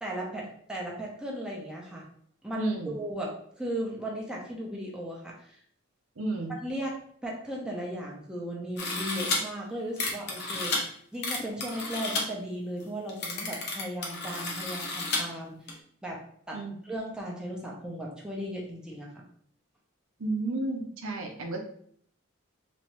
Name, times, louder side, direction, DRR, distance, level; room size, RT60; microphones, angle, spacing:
voice 1, 0.0-2.1 2.4-5.6 6.5-15.7 16.0-16.2 16.5-19.2, right 1 dB, 5° right, -3 dB, 0.7 m, -36 dB
voice 2, 2.6-3.0 6.2-6.5 16.5-16.7 20.2-21.6, right 2 dB, 80° right, 2 dB, 0.7 m, -32 dB
sound 1, 8.8-9.4 10.0-10.8 11.2-12.2 12.8-12.9 13.1-15.2 15.7-15.8, left 3 dB, 50° left, 0.9 m, -31 dB
3.3 x 3.0 x 3.0 m, 0.63 s
head